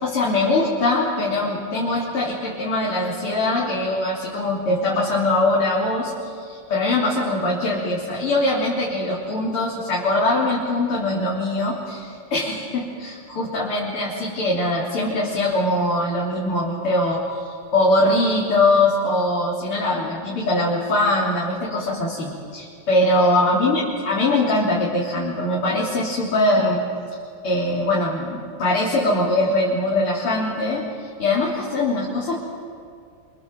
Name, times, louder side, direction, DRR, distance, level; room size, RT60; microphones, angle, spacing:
voice 1, 0.0-26.8 27.4-32.4, left 2 dB, 85° left, -5 dB, 4.3 m, -22 dB
27.0 x 25.5 x 7.7 m, 2.3 s
omnidirectional pair, 2.4 m